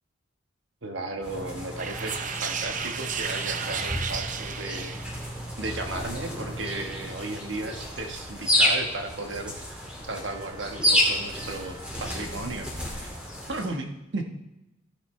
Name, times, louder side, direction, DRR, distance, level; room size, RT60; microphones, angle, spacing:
voice 1, 0.8-2.1 2.4-5.0 5.6-13.1 13.5-14.2, right 2 dB, 70° right, 4 dB, 1.3 m, -35 dB
sound 1, 1.2-13.7, equal, 5° right, 2.3 m, -30 dB
sound 2, 1.8-5.4, right 7 dB, 40° right, 0.6 m, -33 dB
14.5 x 8.2 x 3.2 m, 0.95 s
head